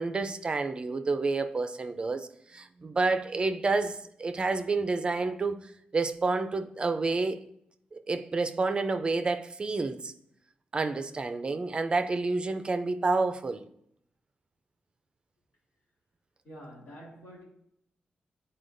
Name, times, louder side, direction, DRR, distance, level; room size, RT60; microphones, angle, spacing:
voice 1, 0.0-2.3 2.5-5.6 5.9-7.4 8.1-10.1 10.7-13.6, right 3 dB, 30° right, 0.4 m, -29 dB
voice 2, 16.4-17.4, equal, 90° left, 2.4 m, -47 dB
9.8 x 4.2 x 2.6 m
wide cardioid pair, 140°, 3 cm